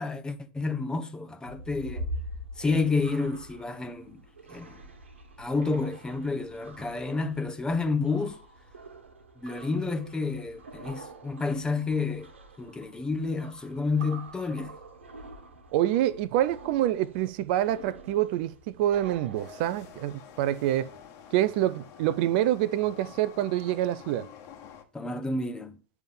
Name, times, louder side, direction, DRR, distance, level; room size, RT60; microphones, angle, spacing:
voice 1, 0.0-2.1 2.6-4.2 4.5-4.8 5.4-8.4 9.4-12.3 12.6-14.7 24.9-25.8, left 3 dB, 10° left, 1.0 m, -30 dB
sound 1, 1.4-20.1, right 1 dB, 80° right, 1.6 m, -45 dB
voice 2, 15.7-20.9 21.3-24.3, right 13 dB, 55° right, 0.5 m, -26 dB
sound 2, 19.3-24.8, left 8 dB, 45° left, 1.4 m, -49 dB
9.3 x 3.5 x 5.5 m
hypercardioid pair, 100°, 6 cm